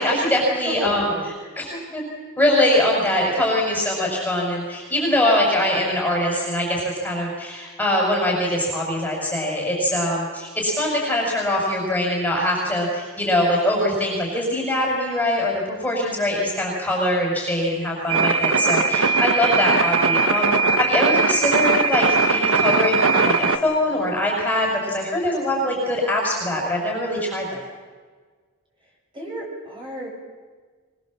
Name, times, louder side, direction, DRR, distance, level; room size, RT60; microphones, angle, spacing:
voice 1, 0.0-2.0 2.4-27.6, left 1 dB, 5° left, -2 dB, 5.8 m, -23 dB
voice 2, 0.6-1.3 29.1-30.1, right 1 dB, 25° right, -2 dB, 7.6 m, -32 dB
sound 1, 18.1-23.6, right 4 dB, 65° right, 1.4 m, -19 dB
24.5 x 23.0 x 7.6 m, 1.5 s
head